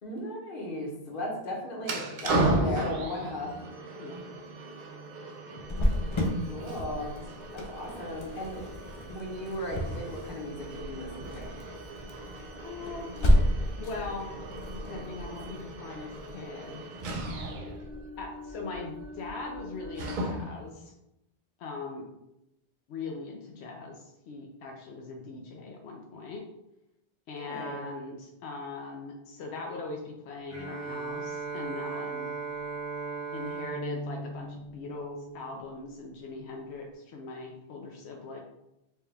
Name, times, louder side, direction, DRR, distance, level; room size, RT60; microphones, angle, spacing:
voice 1, 0.0-3.6 5.9-7.2 7.5-8.7 9.1-11.5 27.4-27.8, left 1 dB, 55° left, -1 dB, 1.1 m, -36 dB
sound 1, 1.8-20.7, right 2 dB, 60° right, 0.6 m, -36 dB
Cricket, 5.6-17.1, equal, 40° left, 0.4 m, -31 dB
voice 2, 12.6-13.3 13.8-14.3 14.9-16.9 18.2-20.9 21.6-22.1 22.9-26.5 27.3-32.4 33.3-38.4, left 3 dB, 85° left, 1 dB, 0.9 m, -40 dB
Bowed string instrument, 30.5-35.8, right 4 dB, 15° right, 1.1 m, -37 dB
4.5 x 2.3 x 3.3 m, 0.87 s
omnidirectional pair, 1.1 m